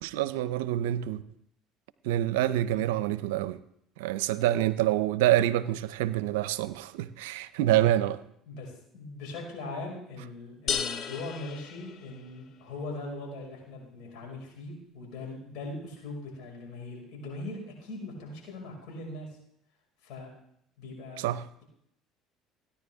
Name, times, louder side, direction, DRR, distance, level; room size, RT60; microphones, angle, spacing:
voice 1, 0.0-1.2 2.0-3.6 4.0-8.2 21.2-21.5, right 13 dB, 85° right, 0.5 m, -27 dB
voice 2, 8.5-19.3 20.0-20.3 20.8-21.2, left 2 dB, 65° left, 5.5 m, -40 dB
sound 1, 10.7-12.5, left 7 dB, 50° left, 0.8 m, -34 dB
17.0 x 10.0 x 3.5 m
supercardioid pair, 80°, 0 cm